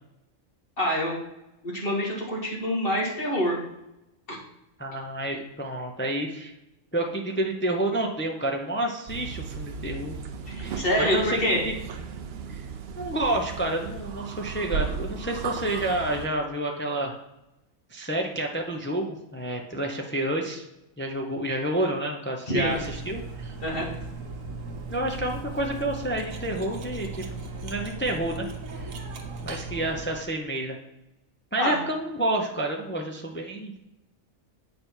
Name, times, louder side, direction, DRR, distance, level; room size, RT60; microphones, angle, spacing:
voice 1, 0.8-1.2 1.6-3.6 4.3-4.4 10.5-11.7 22.5-22.8 23.6-23.9 31.6-31.8, equal, 40° left, -3 dB, 2.0 m, -26 dB
voice 2, 4.8-6.5 6.9-10.2 10.6-11.4 11.6-11.7 12.1-12.2 12.5-12.6 13.0-17.2 17.9-20.6 21.0-23.5 24.9-27.3 27.6-28.5 28.7-28.9 29.4-30.8 31.5-33.7, right 1 dB, 10° left, 1 dB, 0.5 m, -29 dB
sound 1, 9.1-16.3, right 6 dB, 60° right, 0.8 m, -35 dB
Cutlery silverware, 22.6-30.3, right 3 dB, 75° right, 1.3 m, -37 dB
8.6 x 5.1 x 4.5 m, 0.90 s
omnidirectional pair, 1.4 m